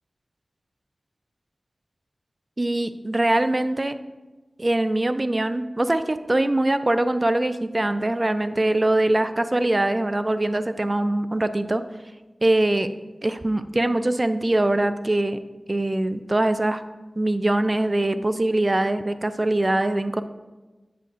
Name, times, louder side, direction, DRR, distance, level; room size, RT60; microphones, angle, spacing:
voice 1, 2.6-4.0 4.6-11.8 12.4-12.9 13.2-15.4 15.7-16.8 17.2-20.2, right 1 dB, 35° right, 11 dB, 0.4 m, -22 dB
7.5 x 7.0 x 2.4 m, 1.2 s
wide cardioid pair, 55°, 0 cm